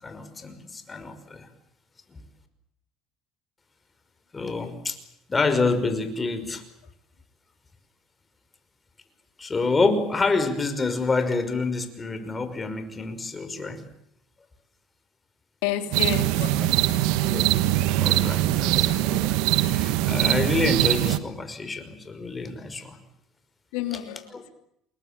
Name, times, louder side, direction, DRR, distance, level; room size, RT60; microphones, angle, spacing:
voice 1, 0.0-1.5 2.1-2.2 4.3-5.0 5.3-6.6 9.4-13.8 17.3-23.0, left 3 dB, 20° left, 9 dB, 5.7 m, -27 dB
voice 2, 15.6-16.7 23.7-24.5, left 13 dB, 85° left, 7 dB, 3.3 m, -30 dB
sound 1, 15.9-21.2, right 15 dB, 80° right, 1.5 m, -22 dB
28.5 x 21.5 x 9.0 m, 0.75 s
supercardioid pair, 100°, 0 cm